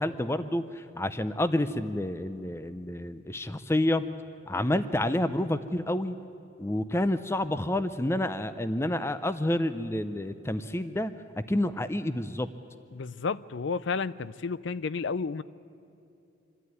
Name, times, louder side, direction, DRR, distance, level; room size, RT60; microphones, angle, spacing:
voice 1, 0.0-4.0 4.5-6.2 6.6-12.5, left 1 dB, 15° left, 12 dB, 0.5 m, -29 dB
voice 2, 12.9-15.4, left 5 dB, 70° left, 18 dB, 0.5 m, -31 dB
26.0 x 12.0 x 9.6 m, 2.6 s
head